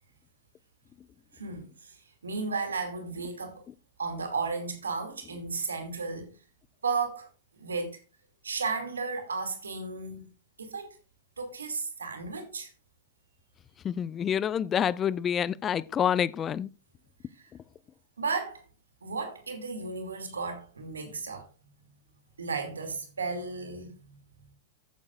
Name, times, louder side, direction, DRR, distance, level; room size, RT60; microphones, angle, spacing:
voice 1, 1.3-1.9 2.2-3.6 4.0-6.3 6.8-7.3 7.6-7.9 8.4-10.3 10.6-11.0 11.4-12.7 18.2-18.6 19.0-21.5 22.4-23.9, right 4 dB, 75° right, 2.6 m, -34 dB
voice 2, 13.8-16.7, left 9 dB, 25° left, 0.4 m, -27 dB
14.5 x 8.6 x 2.5 m
figure-of-eight pair, 90°, 0 cm